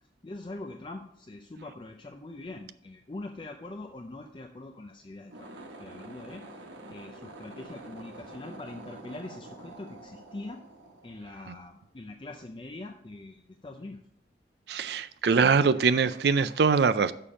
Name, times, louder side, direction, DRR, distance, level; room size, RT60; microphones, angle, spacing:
voice 1, 0.0-5.5 5.8-10.6 11.0-14.0, left 2 dB, 25° left, 4 dB, 0.4 m, -43 dB
sound 1, 5.2-11.7, right 2 dB, 90° right, 1.1 m, -47 dB
voice 2, 14.7-17.1, right 5 dB, 60° right, 14 dB, 0.4 m, -23 dB
6.7 x 5.7 x 5.0 m, 0.73 s
head